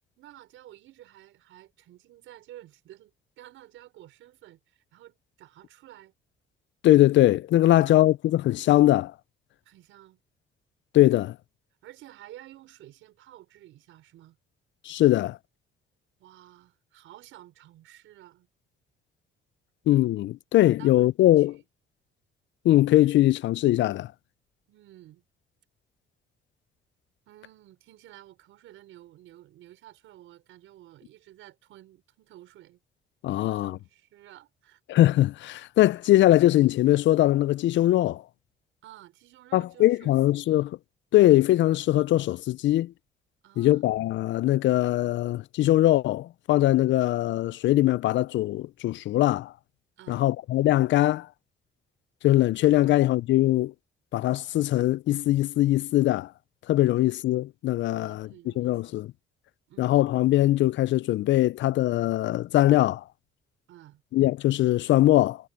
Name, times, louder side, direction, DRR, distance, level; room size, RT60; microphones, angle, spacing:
voice 1, 0.2-6.1 7.7-8.0 9.6-10.2 11.8-14.4 16.2-18.5 20.8-21.1 21.4-21.6 24.7-25.2 27.3-32.8 33.4-34.8 38.8-40.2 40.5-40.6 43.4-43.9 50.0-50.3 52.8-53.0 58.0-59.0 59.7-60.0 63.7-64.0, right 14 dB, 85° right, 5.2 m, -51 dB
voice 2, 6.8-9.1 10.9-11.3 14.9-15.4 19.9-21.6 22.6-24.1 33.2-33.8 34.9-38.2 39.5-40.8 41.1-42.9 43.6-49.5 50.1-51.3 52.2-53.7 54.1-56.3 56.7-58.3 58.6-59.1 59.8-63.0 64.1-65.4, left 15 dB, 70° left, 0.4 m, -21 dB
cardioid pair, 90°, 20 cm